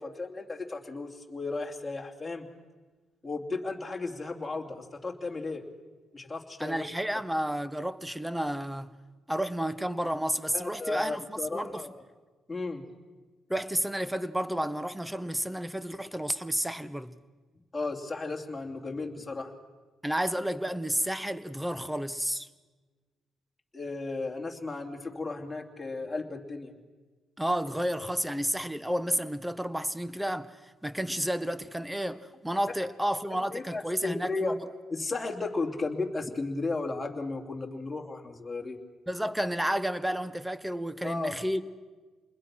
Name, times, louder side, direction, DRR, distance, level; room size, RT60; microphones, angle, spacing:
voice 1, 0.0-2.5 3.2-5.6 6.1-6.8 10.5-12.0 12.5-13.0 17.7-19.5 23.7-26.7 33.5-34.5 34.9-38.8 41.0-41.4, left 3 dB, 15° left, 2.8 m, -34 dB
voice 2, 6.6-8.9 9.3-11.8 13.5-17.2 20.0-22.5 27.4-34.6 39.1-41.6, equal, 5° right, 1.1 m, -31 dB
27.5 x 21.0 x 6.2 m
cardioid pair, 90°, 0 cm